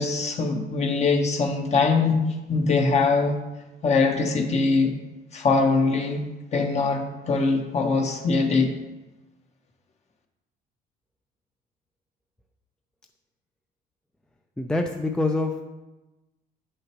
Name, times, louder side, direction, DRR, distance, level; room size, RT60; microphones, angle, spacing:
voice 1, 0.0-2.2 2.5-3.4 3.8-4.9 5.3-6.3 6.5-8.7, left 4 dB, 40° left, 4 dB, 1.1 m, -22 dB
voice 2, 14.6-15.6, left 2 dB, 5° left, 4 dB, 0.4 m, -25 dB
8.0 x 6.5 x 3.0 m, 1.1 s
cardioid pair, 110°, 17 cm